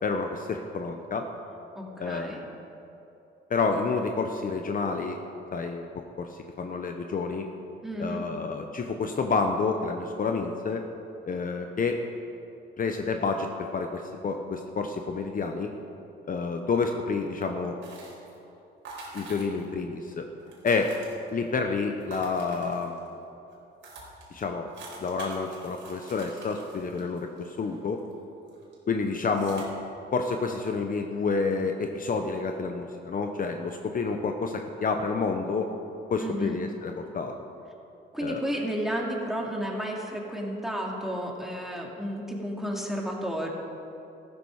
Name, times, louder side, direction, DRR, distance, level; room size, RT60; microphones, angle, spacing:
voice 1, 0.0-1.3 2.0-2.5 3.5-5.2 5.5-5.9 6.2-7.5 8.0-10.8 11.3-12.0 12.8-13.5 13.7-15.7 16.3-17.8 19.1-20.2 20.6-20.9 21.3-23.0 24.3-24.7 25.0-28.0 28.9-29.7 30.1-35.7 36.1-37.3 38.2-38.4, left 4 dB, 45° left, 4 dB, 1.0 m, -29 dB
voice 2, 1.8-2.4 7.8-8.3 36.2-36.6 38.1-43.5, equal, ahead, -2 dB, 2.6 m, -32 dB
sound 1, 17.8-18.4 18.8-19.8 20.0-20.1 20.3-21.5 22.0-23.1 23.5-23.6 23.8-28.1 28.5-28.7 29.2-29.6, right 3 dB, 75° right, 3.9 m, -45 dB
14.5 x 12.5 x 4.9 m, 2.8 s
cardioid pair, 90°, 20 cm